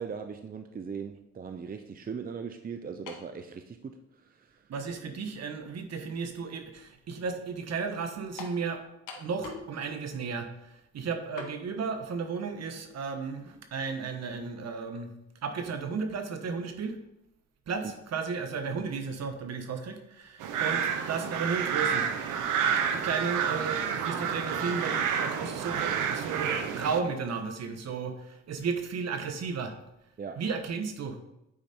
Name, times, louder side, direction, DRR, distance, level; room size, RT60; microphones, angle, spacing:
voice 1, 0.0-3.9 4.2-4.6 20.5-20.7 30.2-30.4, right 6 dB, 30° right, 7 dB, 0.6 m, -39 dB
sound 1, 3.1-3.3 4.2-4.3 8.4-8.6 9.1-9.7 10.0-10.1 11.4-11.6, left 5 dB, 85° left, 1.4 m, -42 dB
voice 2, 4.7-8.8 9.1-15.1 15.4-17.0 17.7-22.1 22.9-29.7 30.4-31.2, right 5 dB, 60° right, 7 dB, 1.2 m, -34 dB
sound 2, 20.4-27.0, right 7 dB, 85° right, 0.8 m, -29 dB
8.9 x 5.0 x 4.4 m, 0.86 s
cardioid pair, 90°, 30 cm